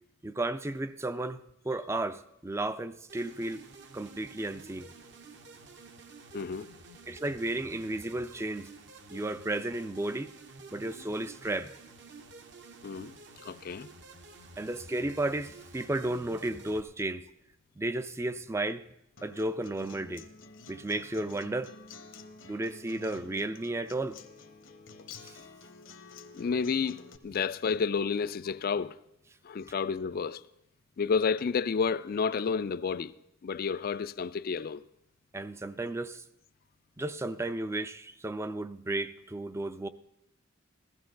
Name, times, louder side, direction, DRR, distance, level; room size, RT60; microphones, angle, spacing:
voice 1, 0.2-3.6 3.9-4.9 7.1-8.7 9.1-10.3 10.7-11.8 14.6-17.3 17.8-18.8 19.2-20.3 20.7-21.7 22.4-24.2 25.2-25.4 35.3-36.2 37.0-39.9, right 2 dB, 15° right, 0.4 m, -33 dB
sound 1, 3.1-16.8, right 3 dB, 60° right, 1.1 m, -51 dB
voice 2, 6.3-6.7 12.8-13.9 26.3-29.0 29.4-30.4 31.0-33.1 33.4-34.8, left 5 dB, 50° left, 0.4 m, -30 dB
Acoustic guitar, 19.2-27.2, left 4 dB, 70° left, 0.9 m, -50 dB
15.5 x 13.5 x 3.9 m
head